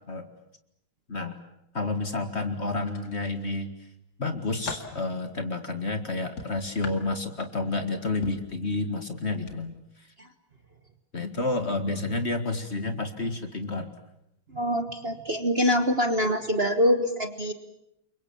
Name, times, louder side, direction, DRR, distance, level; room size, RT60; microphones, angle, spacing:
voice 1, 1.7-3.7 4.2-10.1 11.1-13.9, left 2 dB, 35° left, 8 dB, 2.1 m, -30 dB
sound 1, 2.8-3.6 4.1-5.0 6.4-7.8 8.2-8.5 9.4-9.6 9.9-10.1, left 4 dB, 70° left, 2.8 m, -40 dB
voice 2, 14.5-17.5, equal, 35° right, 8 dB, 1.4 m, -24 dB
29.5 x 24.0 x 7.2 m, 0.81 s
omnidirectional pair, 2.1 m